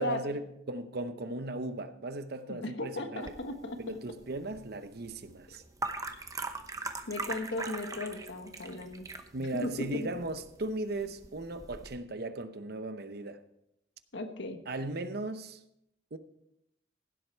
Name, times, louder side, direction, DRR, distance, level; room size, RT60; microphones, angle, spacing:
voice 1, 0.0-3.3 3.8-5.6 9.3-13.4 14.7-15.6 16.1-16.2, right 2 dB, 55° right, 0.8 m, -37 dB
voice 2, 2.5-4.0 7.1-9.1 9.4-10.1 14.1-14.6, left 2 dB, 75° left, 1.3 m, -36 dB
sound 1, 3.2-11.9, right 3 dB, 20° right, 0.8 m, -42 dB
sound 2, 7.5-7.8 8.3-8.8, right 2 dB, 75° right, 4.7 m, -62 dB
16.0 x 7.9 x 4.5 m
head